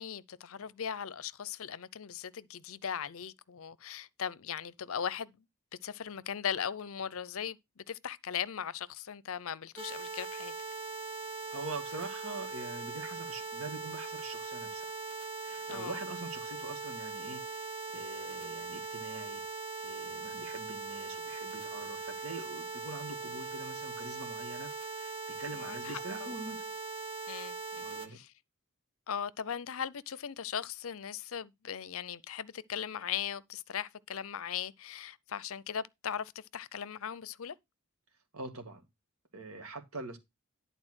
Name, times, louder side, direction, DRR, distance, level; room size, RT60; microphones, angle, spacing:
voice 1, 0.0-5.3 5.8-10.5 15.7-16.0 25.5-26.3 27.3-28.3 29.1-37.6, left 8 dB, 65° left, 0.6 m, -39 dB
sound 1, 9.8-28.1, right 4 dB, 25° right, 1.3 m, -40 dB
voice 2, 11.5-14.9 15.4-19.4 19.8-26.6 27.8-28.2 38.3-38.8 39.3-40.2, right 2 dB, 70° right, 2.0 m, -44 dB
11.0 x 4.0 x 6.2 m
head